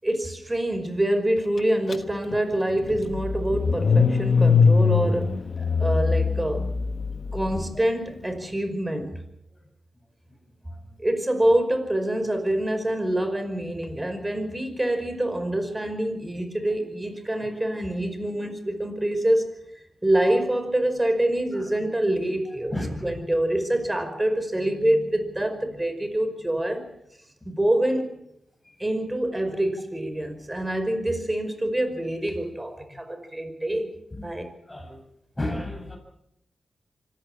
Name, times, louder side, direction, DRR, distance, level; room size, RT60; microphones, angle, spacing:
voice 1, 0.0-5.4 5.8-6.7 7.3-9.2 11.0-19.5 20.0-22.7 23.0-26.9 27.5-28.1 28.8-33.9 34.2-34.5, right 1 dB, 20° right, 9 dB, 5.3 m, -26 dB
Car / Engine starting, 1.9-2.0 2.3-7.5, left 5 dB, 55° left, 1.3 m, -22 dB
voice 2, 22.7-23.1 34.7-35.0 35.4-36.0, left 1 dB, 20° left, 4 dB, 7.9 m, -31 dB
25.0 x 14.5 x 7.3 m, 0.78 s
cardioid pair, 55°, 0 cm